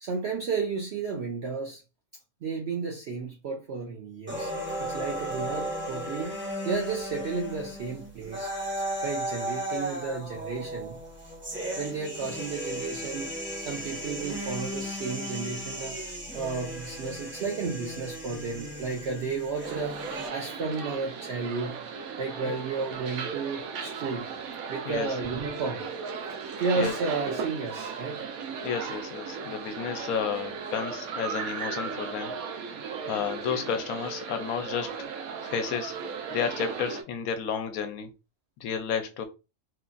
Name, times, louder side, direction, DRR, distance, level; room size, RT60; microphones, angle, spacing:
voice 1, 0.0-1.8 2.4-4.5 4.8-6.4 6.6-8.5 9.0-11.0 11.8-13.3 13.7-16.0 16.3-20.0 20.3-21.8 22.2-24.3 24.7-25.9 26.6-28.3, right 4 dB, 65° right, 0.7 m, -32 dB
sound 1, 4.3-20.3, equal, 15° right, 0.5 m, -35 dB
sound 2, 19.6-37.0, right 5 dB, 90° right, 1.1 m, -36 dB
voice 2, 24.8-25.2 26.7-26.9 28.6-32.3 33.1-35.0 35.4-36.0 36.3-38.1 38.6-39.2, left 7 dB, 85° left, 1.1 m, -31 dB
3.0 x 2.5 x 2.3 m
omnidirectional pair, 1.4 m